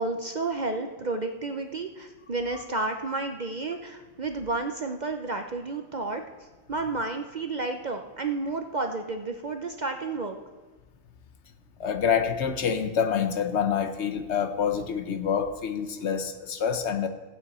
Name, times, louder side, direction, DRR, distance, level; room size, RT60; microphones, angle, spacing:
voice 1, 0.0-6.2 6.7-10.4, right 3 dB, 45° right, 5 dB, 0.6 m, -31 dB
voice 2, 11.8-17.1, left 7 dB, 65° left, 8 dB, 1.0 m, -27 dB
15.0 x 8.8 x 4.2 m, 1.2 s
omnidirectional pair, 1.3 m